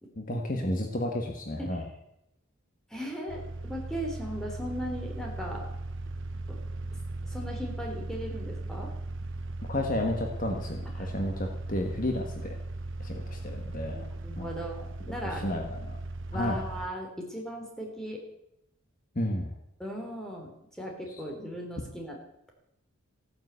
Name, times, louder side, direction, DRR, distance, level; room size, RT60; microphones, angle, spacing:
voice 1, 0.2-1.8 9.7-12.5 13.0-14.0 14.4-14.5 15.2-16.0 16.3-16.6 19.1-19.5, left 1 dB, 40° left, 2 dB, 1.5 m, -32 dB
voice 2, 2.9-5.7 6.5-6.6 7.2-8.9 9.7-9.8 11.0-11.1 13.9-15.4 16.3-18.2 19.8-20.5 20.8-22.2, equal, ahead, 1 dB, 3.3 m, -38 dB
sound 1, 3.3-16.9, right 2 dB, 60° right, 0.9 m, -38 dB
15.5 x 9.6 x 8.1 m, 0.85 s
head